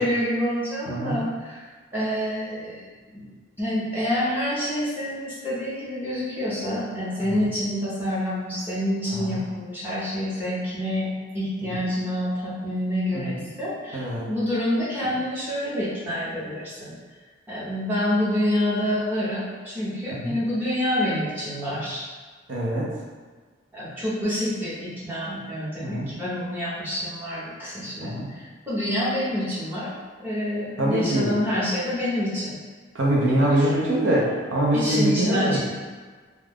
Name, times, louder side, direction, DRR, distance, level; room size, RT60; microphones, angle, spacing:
voice 1, 0.0-1.6 1.9-3.2 3.6-16.9 17.5-22.0 23.7-29.9 30.2-32.6 33.3-33.8 34.7-35.6, left 1 dB, 10° right, -10 dB, 0.8 m, -27 dB
voice 2, 0.9-1.2 9.1-9.4 13.1-13.3 13.9-14.2 20.2-20.4 22.5-22.9 25.8-26.1 28.0-28.3 30.8-31.3 32.9-35.6, right 1 dB, 75° right, -5 dB, 0.7 m, -23 dB
2.3 x 2.3 x 3.4 m, 1.5 s
head